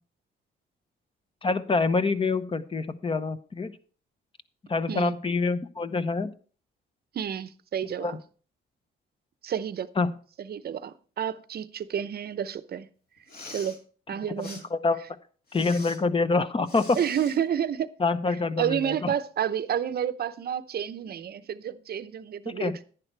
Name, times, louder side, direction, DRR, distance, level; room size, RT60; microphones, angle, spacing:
voice 1, 1.4-3.7 4.7-6.3 8.0-8.1 10.0-10.1 14.4-15.0 15.5-17.0 18.0-19.1 22.6-22.8, left 3 dB, 25° left, 0.9 m, -26 dB
voice 2, 7.1-8.2 9.4-9.9 10.4-12.9 13.5-13.8 14.1-14.7 17.0-17.9 18.3-22.8, right 9 dB, 50° right, 0.7 m, -30 dB
Respiratory sounds, 13.2-13.8 14.4-14.6 15.5-16.0 16.6-17.4, left 2 dB, 50° left, 2.7 m, -44 dB
10.5 x 10.5 x 3.4 m
cardioid pair, 90°, 20 cm